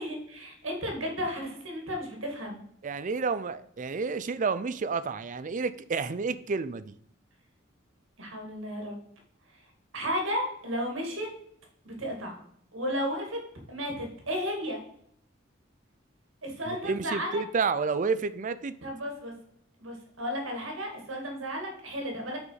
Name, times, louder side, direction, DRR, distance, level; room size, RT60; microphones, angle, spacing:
voice 1, 0.0-2.6 8.2-9.0 9.9-11.3 11.8-12.4 12.7-13.4 13.7-14.8 16.4-17.4 18.8-19.3 19.8-22.4, equal, 85° right, 2 dB, 2.3 m, -33 dB
voice 2, 2.8-6.9 16.6-18.7, right 4 dB, 40° right, 14 dB, 0.4 m, -30 dB
6.2 x 5.2 x 5.6 m, 0.67 s
head